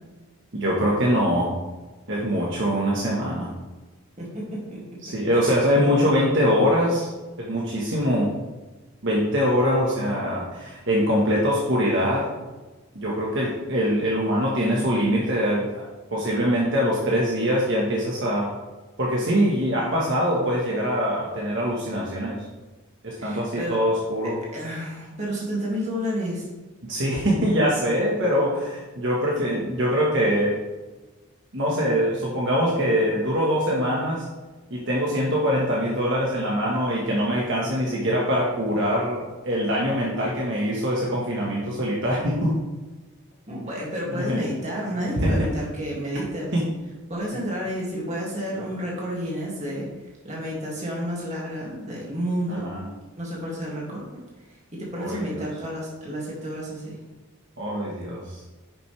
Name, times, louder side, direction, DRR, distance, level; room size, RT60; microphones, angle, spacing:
voice 1, 0.5-1.6 2.1-3.5 5.0-7.1 7.4-8.3 9.0-12.3 12.9-15.8 16.1-18.5 19.0-22.5 23.0-24.4 26.9-30.6 31.5-34.2 34.7-42.6 43.7-43.8 44.1-44.4 45.2-45.5 46.5-46.6 52.5-52.9 54.9-55.4 57.6-58.4, equal, 55° right, -4 dB, 1.6 m, -23 dB
voice 2, 4.2-5.0 23.2-23.8 24.2-26.4 43.5-46.6 47.1-49.9 50.2-52.7 53.2-54.2 54.7-57.0, equal, 30° right, -4 dB, 2.6 m, -30 dB
10.5 x 6.6 x 3.5 m, 1.2 s
head